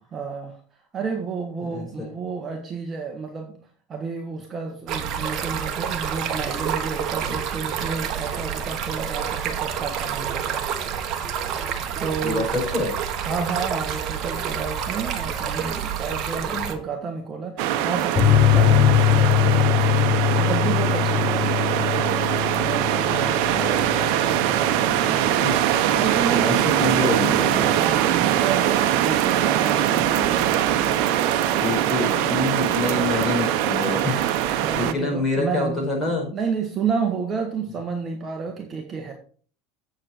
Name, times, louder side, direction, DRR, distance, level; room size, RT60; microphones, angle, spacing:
voice 1, 0.1-0.6 0.9-3.6 3.9-10.6 12.0-12.5 13.2-19.4 20.3-22.1 22.6-25.2 26.0-26.6 27.6-30.1 34.6-35.8 36.3-39.1, right 5 dB, 25° right, 2 dB, 1.4 m, -31 dB
voice 2, 1.7-2.1 12.2-12.4 12.7-12.9 16.4-16.6 23.3-23.8 25.0-25.5 26.3-27.7 30.1-30.3 31.6-36.3, left 3 dB, 15° left, -2 dB, 4.9 m, -27 dB
Stream, 4.9-16.7, right 8 dB, 45° right, 1.3 m, -28 dB
sound 1, 17.6-34.9, right 11 dB, 60° right, 0.9 m, -22 dB
sound 2, 18.2-25.3 25.5-25.6 26.0-26.1, left 11 dB, 30° left, 0.8 m, -22 dB
8.0 x 7.5 x 4.4 m, 0.44 s
supercardioid pair, 130°, 0 cm